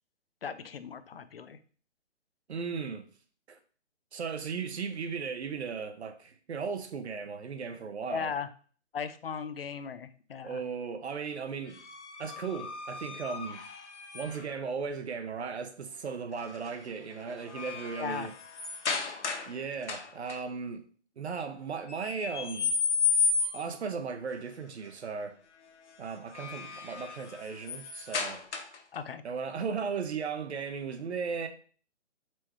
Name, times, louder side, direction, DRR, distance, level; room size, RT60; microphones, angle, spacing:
voice 1, 0.4-1.6 8.1-8.5 8.9-10.6 18.0-18.3 28.9-29.2, left 6 dB, 55° left, 0.5 m, -37 dB
voice 2, 2.5-3.1 3.5-3.6 4.1-8.3 10.4-11.8 12.2-13.7 14.1-18.3 18.8-20.8 21.2-22.8 23.5-25.4 26.0-28.4 29.2-31.5, right 5 dB, 65° right, 0.8 m, -36 dB
sound 1, 11.7-14.6 16.4-16.7 17.1-19.6 19.8-20.4 21.9-23.8 26.1-29.0, left 5 dB, 70° left, 0.9 m, -33 dB
4.4 x 3.4 x 3.0 m
hypercardioid pair, 170°, 36 cm